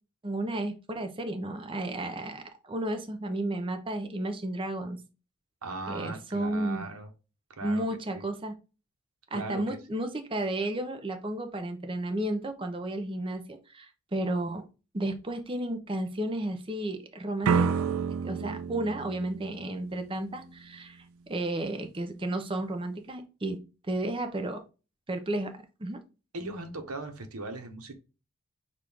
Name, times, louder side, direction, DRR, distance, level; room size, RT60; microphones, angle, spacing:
voice 1, 0.2-5.0 5.9-6.9 7.6-8.6 9.3-14.6 14.9-17.7 18.2-21.0 21.3-24.6 25.1-26.0, right 1 dB, 25° right, 0.6 m, -33 dB
voice 2, 5.6-7.1 7.6-7.9 8.1-8.3 9.3-9.8 26.3-27.9, right 2 dB, 85° right, 1.0 m, -38 dB
sound 1, 17.4-20.3, right 5 dB, 70° right, 0.3 m, -29 dB
6.1 x 2.5 x 3.5 m
head